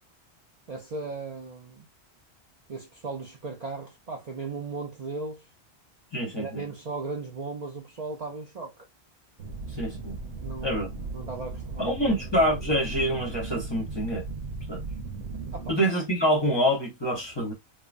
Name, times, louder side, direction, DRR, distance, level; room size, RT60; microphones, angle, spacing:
voice 1, 0.7-1.9 2.7-5.5 6.3-8.9 10.4-12.1 15.5-15.7, right 3 dB, 50° right, 0.5 m, -37 dB
voice 2, 6.1-6.6 9.7-10.2 10.6-11.1 11.8-14.2 14.7-14.8 15.7-17.5, equal, 25° left, 0.8 m, -26 dB
sound 1, 9.4-15.7, right 3 dB, 75° right, 0.9 m, -37 dB
3.1 x 2.1 x 2.4 m
omnidirectional pair, 1.1 m